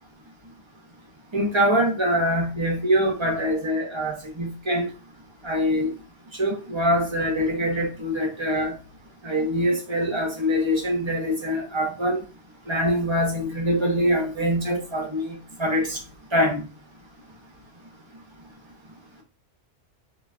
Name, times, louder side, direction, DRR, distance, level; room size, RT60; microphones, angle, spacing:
voice 1, 1.3-4.9 5.4-5.9 6.4-8.8 9.2-12.2 12.7-16.0 16.3-16.6, equal, 30° right, 0.6 m, -24 dB
3.1 x 2.2 x 2.4 m
omnidirectional pair, 1.2 m